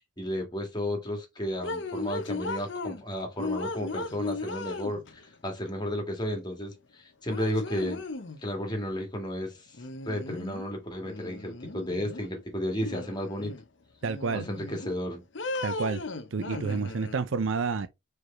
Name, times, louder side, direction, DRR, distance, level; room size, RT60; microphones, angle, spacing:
voice 1, 0.2-8.0 8.4-9.8 10.0-13.5 14.3-15.2, equal, 20° left, 2.0 m, -33 dB
sound 1, 1.6-3.0 3.4-5.3 6.7-6.8 7.3-8.4 9.7-10.7 11.1-12.3 12.8-13.6 14.0-15.0 15.3-17.2, left 3 dB, 60° left, 0.8 m, -36 dB
voice 2, 14.0-14.5 15.6-16.0 16.3-17.9, right 4 dB, 70° right, 0.5 m, -29 dB
4.7 x 4.7 x 4.3 m
head